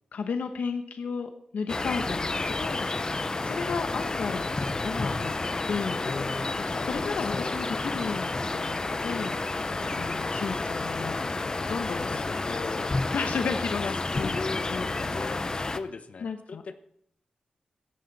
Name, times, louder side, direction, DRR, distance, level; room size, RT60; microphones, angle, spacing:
voice 1, 0.1-2.9 3.4-4.5 4.8-5.3 5.7-6.0 6.6-7.7 7.9-9.4 10.0-12.3 13.1-14.4 14.7-14.9 16.2-16.7, left 5 dB, 85° left, 6 dB, 1.0 m, -33 dB
sound 1, 1.7-15.8, left 3 dB, 30° left, 0.7 m, -30 dB
voice 2, 6.0-7.6 9.8-10.0 11.9-13.0 13.3-13.7 14.1-16.7, left 4 dB, 60° left, 11 dB, 1.0 m, -38 dB
16.5 x 11.5 x 4.1 m, 0.73 s
wide cardioid pair, 105°, 3 cm